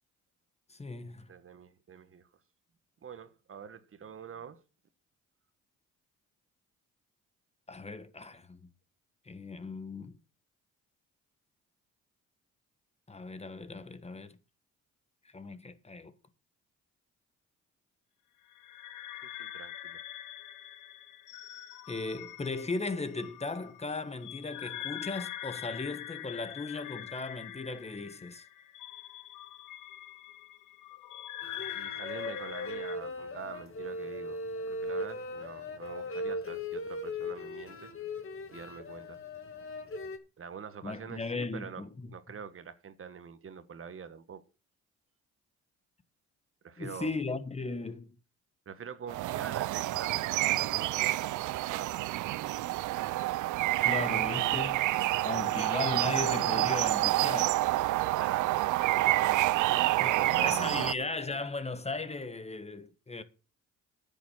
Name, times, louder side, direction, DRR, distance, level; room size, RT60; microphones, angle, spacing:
voice 1, 0.7-1.3 7.7-8.6 9.3-10.2 13.1-14.4 15.3-16.1 21.9-28.4 40.8-42.1 46.8-48.2 53.8-54.9 55.2-57.6 60.0-63.2, left 3 dB, 20° left, 1.3 m, -37 dB
voice 2, 1.3-2.3 3.0-4.6 19.2-20.0 31.7-34.4 34.7-37.9 38.5-39.2 40.4-41.8 42.1-44.4 46.6-47.1 48.6-51.3 51.7-51.9 58.1-59.5 60.0-60.8, right 7 dB, 45° right, 1.4 m, -45 dB
sound 1, 18.5-33.0, left 12 dB, 90° left, 1.1 m, -44 dB
sound 2, 31.4-40.2, left 1 dB, 45° left, 2.3 m, -38 dB
sound 3, 49.1-60.9, right 17 dB, 80° right, 0.5 m, -28 dB
9.8 x 7.2 x 7.1 m
cardioid pair, 90°, 30 cm